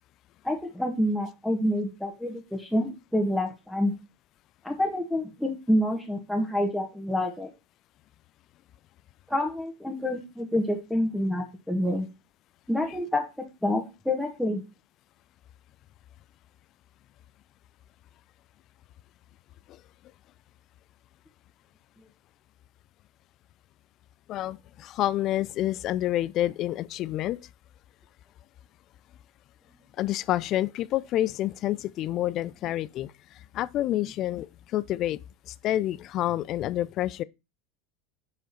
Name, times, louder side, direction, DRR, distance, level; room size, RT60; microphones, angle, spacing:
voice 1, 0.4-3.9 4.6-7.5 9.3-12.1 12.7-14.6, left 1 dB, ahead, 1.7 m, -27 dB
voice 2, 24.3-27.4 30.0-33.1 33.5-35.2 35.5-37.2, left 13 dB, 45° left, 0.4 m, -28 dB
6.7 x 5.0 x 4.3 m
figure-of-eight pair, 80°, 0 cm